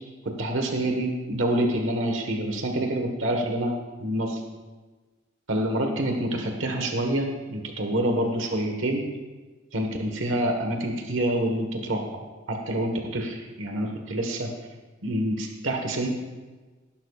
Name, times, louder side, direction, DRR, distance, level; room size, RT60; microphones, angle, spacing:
voice 1, 0.2-4.4 5.5-9.1 9.7-12.0 12.5-14.5 15.0-16.1, right 1 dB, 65° right, 3 dB, 1.4 m, -27 dB
18.0 x 12.0 x 2.4 m, 1.3 s
head